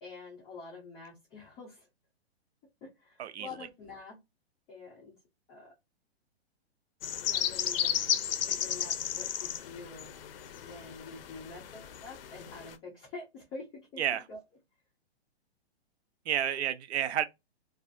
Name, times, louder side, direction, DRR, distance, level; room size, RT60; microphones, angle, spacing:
voice 1, 0.0-1.9 2.8-4.2 4.7-5.1 5.5-5.7 7.2-8.0 8.5-10.1 10.6-14.4, left 3 dB, 15° left, 0.5 m, -47 dB
sound 1, 7.0-12.7, left 9 dB, 60° left, 0.5 m, -34 dB
voice 2, 16.3-17.2, right 10 dB, 80° right, 0.5 m, -30 dB
2.4 x 2.4 x 2.4 m
hypercardioid pair, 150°, 32 cm